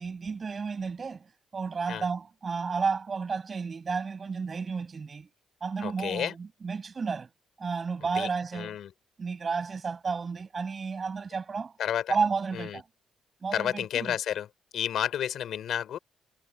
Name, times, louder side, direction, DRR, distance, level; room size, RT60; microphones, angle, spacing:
voice 1, 0.0-5.3 5.6-7.3 7.6-8.8 9.2-11.7 12.1-12.8 13.4-14.2, right 5 dB, 35° right, 6.9 m, -32 dB
voice 2, 5.8-6.3 8.1-8.3 8.5-8.9 11.8-12.2 12.5-12.8 13.5-14.5 14.7-16.0, left 10 dB, 70° left, 3.5 m, -31 dB
cardioid pair, 90°, 0 cm